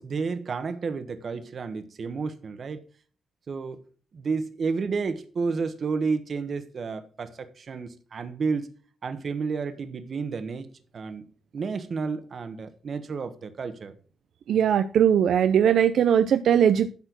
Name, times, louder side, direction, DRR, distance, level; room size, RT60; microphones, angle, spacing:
voice 1, 0.0-2.8 3.5-3.8 4.1-8.7 9.0-10.7 10.9-11.2 11.5-14.0, right 4 dB, 50° right, 1.3 m, -31 dB
voice 2, 14.5-16.9, right 9 dB, 75° right, 0.5 m, -20 dB
12.0 x 4.4 x 6.2 m
cardioid pair, 110°, 0 cm